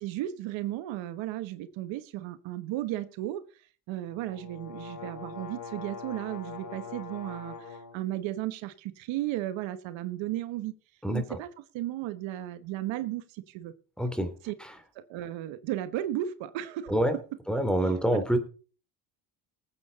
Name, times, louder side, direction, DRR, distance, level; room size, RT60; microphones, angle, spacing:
voice 1, 0.0-3.6 3.9-10.7 11.1-13.7 14.4-14.5 14.9-17.1 18.1-18.2, right 13 dB, 75° right, 12 dB, 1.2 m, -35 dB
sound 1, 4.1-8.0, left 5 dB, 45° left, 4.8 m, -42 dB
voice 2, 14.0-14.3 16.9-17.1 17.5-18.4, right 1 dB, ahead, 9 dB, 2.9 m, -26 dB
19.5 x 8.5 x 4.0 m, 0.39 s
supercardioid pair, 75°, 46 cm